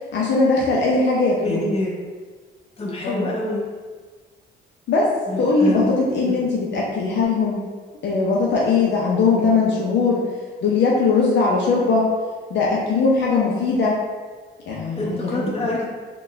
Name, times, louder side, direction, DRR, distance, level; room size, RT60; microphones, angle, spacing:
voice 1, 0.1-1.6 3.0-3.3 4.9-5.1 5.4-7.6 8.0-10.2 10.6-12.1 12.5-14.0 14.7-15.5, left 4 dB, 65° left, -4 dB, 0.6 m, -20 dB
voice 2, 1.4-1.9 2.8-3.6 5.3-6.0 6.3-6.4 9.3-9.5 15.0-15.8, left 1 dB, 30° left, -4 dB, 1.0 m, -26 dB
4.0 x 2.3 x 3.3 m, 1.4 s
cardioid pair, 90°, 20 cm